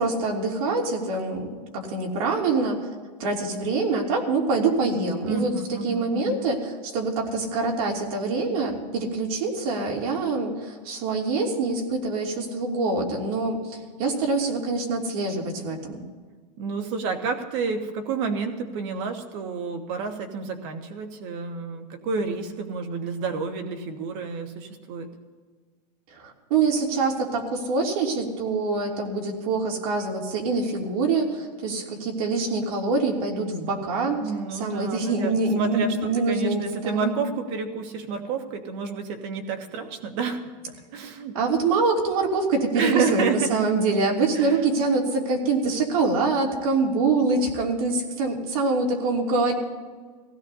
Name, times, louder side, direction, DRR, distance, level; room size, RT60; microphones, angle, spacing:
voice 1, 0.0-1.5 1.7-2.8 3.2-16.0 26.1-34.2 34.5-37.1 41.3-49.5, right 3 dB, 60° right, 0 dB, 3.0 m, -25 dB
voice 2, 5.2-6.4 16.6-25.1 34.2-40.4 40.7-41.4 42.7-43.6 44.3-44.6, right 5 dB, 40° right, 5 dB, 1.5 m, -30 dB
22.5 x 16.5 x 2.8 m, 1.5 s
supercardioid pair, 170°, 21 cm